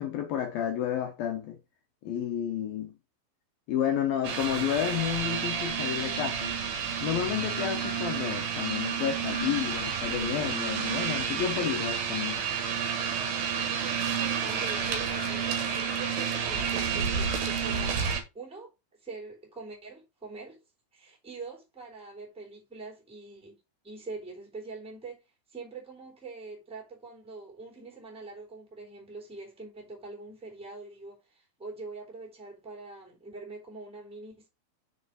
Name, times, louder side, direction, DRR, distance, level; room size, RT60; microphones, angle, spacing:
voice 1, 0.0-1.6 2.0-3.0 3.7-6.6 7.0-12.4, left 10 dB, 70° left, 2.3 m, -31 dB
sound 1, 4.2-18.2, right 7 dB, 60° right, 2.8 m, -30 dB
voice 2, 13.3-18.0 18.3-18.7 19.0-20.6 20.9-23.6 23.8-25.2 25.5-34.5, right 3 dB, ahead, 2.6 m, -44 dB
6.8 x 5.1 x 4.7 m
omnidirectional pair, 5.5 m